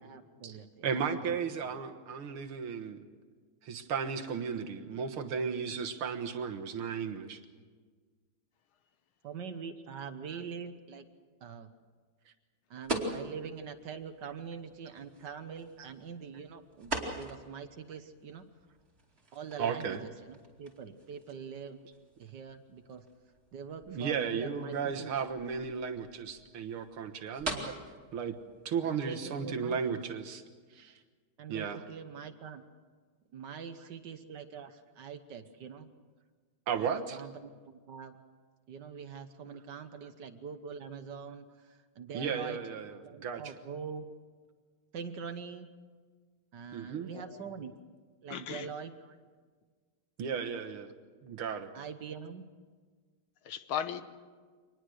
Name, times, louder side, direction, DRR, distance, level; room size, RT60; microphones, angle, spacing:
voice 1, 0.0-1.0 1.3-1.4 9.2-11.0 11.4-11.7 12.7-18.5 19.3-21.8 22.2-23.0 23.5-25.1 28.9-29.8 31.4-32.6 33.3-35.9 36.7-38.2 38.7-42.6 43.0-44.1 44.9-45.7 46.5-47.7 48.2-48.9 51.7-52.4, right 6 dB, 60° right, 9 dB, 1.6 m, -44 dB
voice 2, 0.8-3.1 3.6-7.4 10.3-10.4 15.8-15.9 19.6-20.0 23.9-27.8 28.1-28.4 28.7-30.4 30.7-30.9 31.5-31.8 36.7-37.2 42.1-43.5 46.7-47.1 50.2-50.9 51.2-51.7, right 6 dB, 75° right, 6 dB, 2.2 m, -35 dB
sound 1, 12.8-29.8, right 2 dB, 30° right, 2.9 m, -44 dB
voice 3, 47.1-47.7 48.3-48.7 53.5-54.0, left 9 dB, 75° left, 11 dB, 1.8 m, -37 dB
25.0 x 20.0 x 6.4 m, 1.5 s
omnidirectional pair, 2.4 m